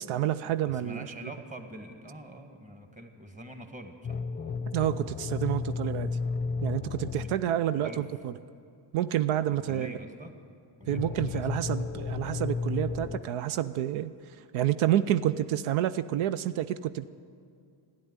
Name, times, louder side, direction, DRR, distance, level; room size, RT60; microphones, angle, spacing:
voice 1, 0.0-1.1 4.7-6.1 6.6-8.3 8.9-10.0 10.9-14.1 14.5-17.1, right 12 dB, 90° right, 13 dB, 0.6 m, -29 dB
voice 2, 0.7-4.2 7.2-7.3 7.8-8.0 9.6-10.3 10.8-11.6, right 1 dB, 15° right, 5 dB, 1.8 m, -44 dB
sound 1, 4.0-7.5 10.8-13.2, left 4 dB, 20° left, 0.6 m, -33 dB
13.0 x 10.5 x 9.6 m, 2.4 s
cardioid pair, 95°, 47 cm